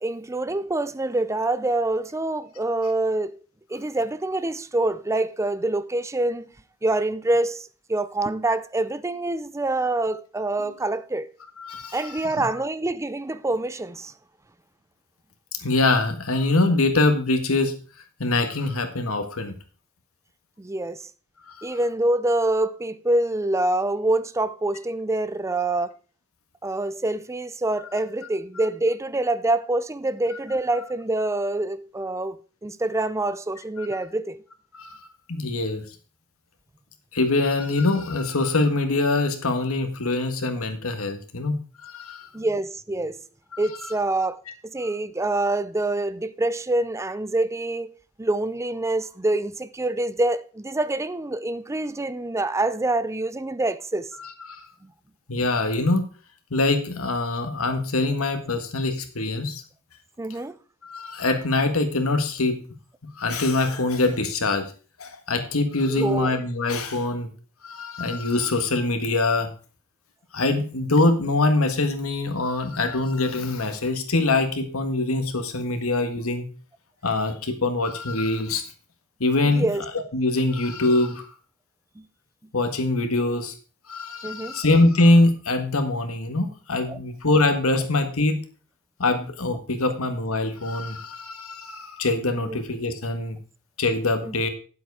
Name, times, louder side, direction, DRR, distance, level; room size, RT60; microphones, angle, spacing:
voice 1, 0.0-3.3 3.7-6.5 6.8-11.3 11.9-14.1 20.6-21.0 21.6-25.9 26.6-34.4 42.3-43.2 43.6-47.9 48.2-54.1 54.8-54.9 60.2-60.6 65.9-66.3 79.4-79.8 82.0-82.1 84.2-84.6 86.9-87.0 92.4-92.6 94.2-94.3, right 2 dB, 15° right, 0.5 m, -26 dB
voice 2, 11.6-12.5 15.6-17.8 18.2-19.5 21.5-21.8 33.8-33.9 34.7-35.0 35.3-35.8 37.1-42.3 43.5-43.6 54.2-54.7 55.3-56.0 56.5-59.6 60.8-62.6 63.2-64.6 65.0-67.3 67.6-69.5 70.3-76.5 77.0-78.6 79.2-79.7 80.1-81.2 82.5-83.5 83.9-88.4 89.0-93.4 93.8-94.5, left 2 dB, 80° left, 1.7 m, -23 dB
9.6 x 7.7 x 4.8 m
head